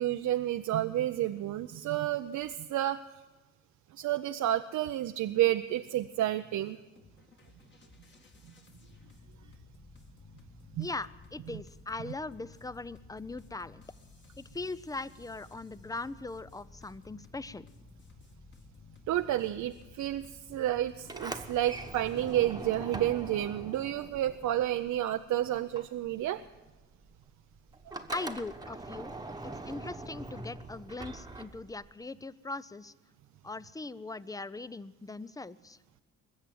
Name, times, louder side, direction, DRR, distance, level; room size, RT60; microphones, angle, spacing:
voice 1, 0.0-3.0 3.9-6.8 10.7-10.9 19.1-26.4, right 13 dB, 70° right, 8 dB, 0.6 m, -30 dB
sound 1, 7.0-22.4, left 3 dB, 35° left, 1.9 m, -55 dB
voice 2, 10.8-13.8 14.4-17.7 28.1-29.1 29.4-32.9 33.4-35.8, left 3 dB, 10° left, 18 dB, 0.5 m, -40 dB
Sliding door, 21.0-25.3 25.5-31.9, right 2 dB, 15° right, 1.1 m, -43 dB
21.0 x 7.5 x 9.2 m, 1.2 s
cardioid pair, 90°, 30 cm